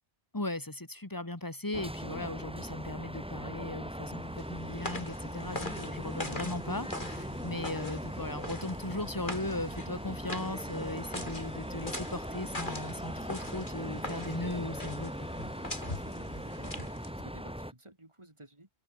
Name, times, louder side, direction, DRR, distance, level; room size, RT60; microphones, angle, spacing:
voice 1, 0.3-15.3, left 2 dB, 20° left, 2.1 m, -37 dB
sound 1, 1.7-17.7, equal, 5° right, 2.8 m, -40 dB
sound 2, 4.0-17.3, left 1 dB, 50° left, 5.5 m, -43 dB
voice 2, 15.8-18.7, right 1 dB, 25° right, 3.8 m, -53 dB
omnidirectional pair, 1.1 m